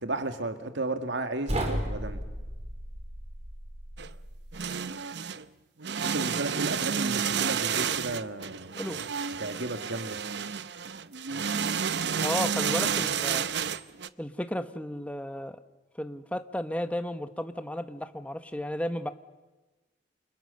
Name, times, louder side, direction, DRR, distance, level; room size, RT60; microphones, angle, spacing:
voice 1, 0.0-2.2 6.0-8.7 9.4-10.2, right 2 dB, 85° right, 7 dB, 2.1 m, -33 dB
sound 1, 1.5-4.5, right 1 dB, 40° right, 4.8 m, -34 dB
sound 2, 4.0-4.1 4.5-5.5 5.8-14.1, right 7 dB, 70° right, 0.8 m, -30 dB
voice 2, 12.2-13.4 14.2-15.6 16.0-19.1, left 1 dB, 10° left, 9 dB, 1.2 m, -33 dB
29.0 x 29.0 x 6.7 m, 1.2 s
head